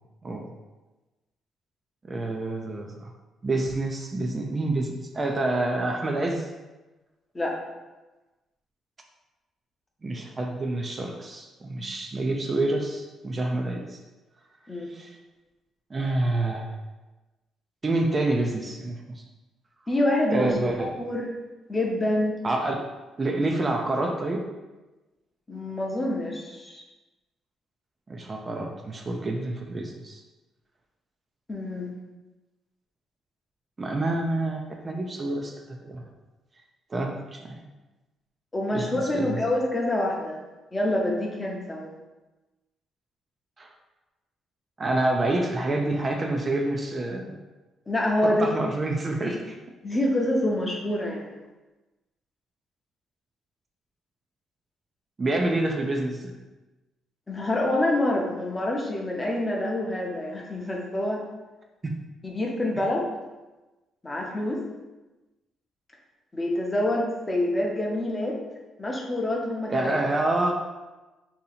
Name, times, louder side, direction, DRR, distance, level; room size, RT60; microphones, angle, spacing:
voice 1, 2.0-3.1 3.4-6.5 10.0-14.0 14.9-15.1 15.9-16.7 17.8-19.2 20.3-20.9 22.4-22.8 23.2-24.5 28.1-30.2 33.8-36.0 36.9-37.6 38.7-38.9 39.1-39.4 43.6-43.7 44.8-47.4 48.2-49.6 55.2-56.3 61.8-61.9 69.7-70.5, right 2 dB, 30° right, 2 dB, 0.4 m, -27 dB
voice 2, 19.9-20.5 20.8-21.3 21.7-22.4 25.5-26.8 31.5-31.9 38.5-40.4 40.7-41.9 47.9-48.5 49.2-49.3 49.8-51.3 57.3-61.2 62.2-63.0 64.0-64.6 66.3-68.4 68.8-69.9, left 1 dB, 20° left, 0 dB, 0.7 m, -26 dB
2.7 x 2.7 x 4.1 m, 1.1 s
cardioid pair, 90°, 0 cm